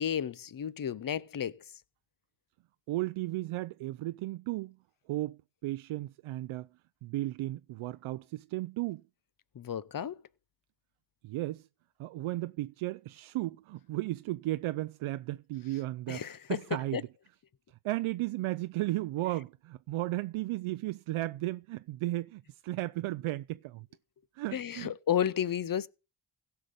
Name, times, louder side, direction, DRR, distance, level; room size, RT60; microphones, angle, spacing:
voice 1, 0.0-1.6 9.6-10.2 16.1-16.4 16.9-17.0 24.5-25.9, left 9 dB, 45° left, 0.8 m, -32 dB
voice 2, 2.9-4.8 5.1-6.7 7.0-9.0 11.2-11.7 12.0-17.1 17.8-23.9 24.3-24.9, right 17 dB, 75° right, 0.5 m, -35 dB
16.5 x 5.8 x 5.0 m
supercardioid pair, 50°, 50 cm